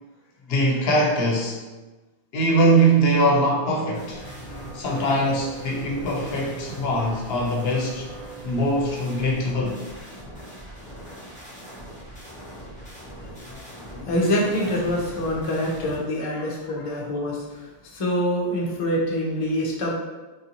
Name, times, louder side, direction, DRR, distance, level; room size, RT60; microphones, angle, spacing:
voice 1, 0.5-1.6 2.3-4.2 4.7-8.1 8.4-9.8 16.4-16.5, right 1 dB, 75° left, -1 dB, 0.8 m, -22 dB
sound 1, 3.9-16.0, right 1 dB, 10° left, 0.9 m, -40 dB
voice 2, 13.4-19.9, equal, 40° left, -3 dB, 0.6 m, -26 dB
3.4 x 2.6 x 2.8 m, 1.2 s
omnidirectional pair, 1.1 m